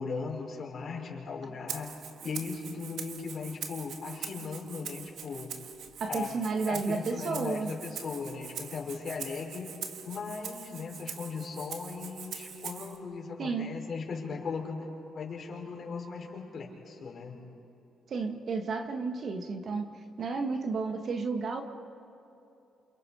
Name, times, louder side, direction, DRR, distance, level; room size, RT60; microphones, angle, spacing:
voice 1, 0.0-1.9 2.2-5.5 6.1-9.7 10.0-14.9 15.1-17.4, left 5 dB, 50° left, -1 dB, 5.6 m, -38 dB
Rattle (instrument), 1.7-13.0, right 7 dB, 70° right, 1.7 m, -43 dB
voice 2, 6.0-7.7 13.4-13.7 18.1-19.9 20.2-21.6, right 4 dB, 55° right, 5 dB, 1.8 m, -32 dB
28.5 x 28.5 x 5.0 m, 2.8 s
cardioid pair, 90°, 0 cm